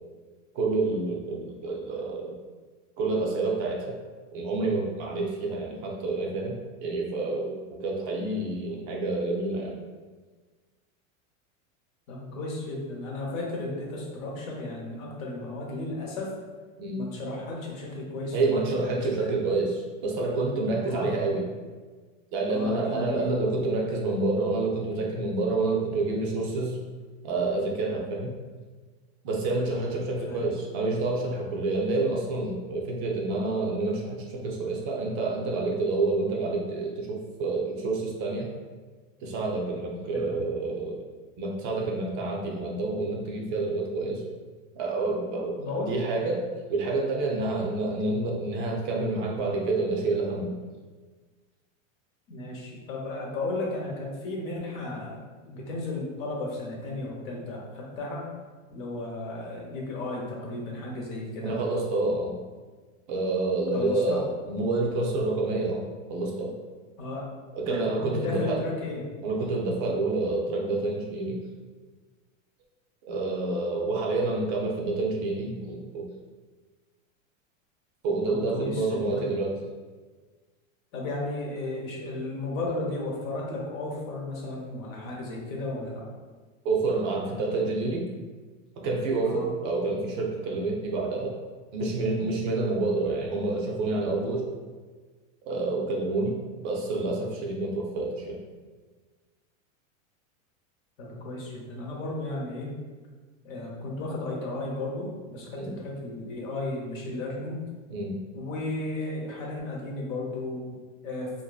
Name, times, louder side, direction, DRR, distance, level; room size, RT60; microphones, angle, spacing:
voice 1, 0.5-2.3 3.0-3.9 4.3-9.8 16.8-17.0 18.3-21.5 22.3-26.8 27.2-28.3 29.2-38.5 39.2-41.0 41.4-44.2 44.7-50.5 61.4-62.4 63.1-66.6 67.6-68.6 69.2-71.4 73.0-76.1 78.0-79.6 86.6-88.1 88.8-91.3 91.7-94.5 95.5-98.4 105.5-105.7 107.9-108.2, right 3 dB, 40° right, -1 dB, 0.4 m, -28 dB
voice 2, 12.1-16.3 16.9-19.3 20.9-21.1 22.5-23.3 30.2-30.5 40.1-40.4 45.6-45.9 52.3-55.2 55.5-58.2 58.7-61.6 63.7-64.2 67.0-67.3 67.7-69.0 78.2-79.2 80.9-86.1 89.2-89.5 101.0-102.7 103.4-107.6 108.3-110.6 111.0-111.3, left 2 dB, 80° left, -2 dB, 0.9 m, -34 dB
2.6 x 2.5 x 2.3 m, 1.4 s
supercardioid pair, 140°, 40 cm